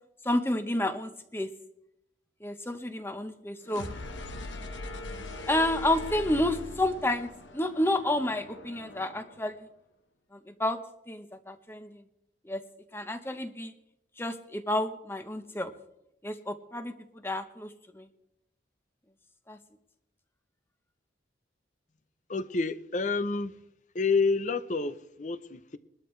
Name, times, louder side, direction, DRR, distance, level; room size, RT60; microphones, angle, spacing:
voice 1, 0.2-1.5 2.4-3.9 5.5-9.7 10.3-10.8 11.1-12.0 12.4-12.6 12.9-13.7 14.2-15.7 16.2-16.9 17.2-18.1 19.5-19.6, left 1 dB, 15° left, 0.9 m, -30 dB
sound 1, 3.6-9.5, left 2 dB, 90° left, 1.3 m, -41 dB
voice 2, 22.3-23.5 23.9-25.8, left 4 dB, 40° left, 0.7 m, -29 dB
22.0 x 12.5 x 3.2 m
head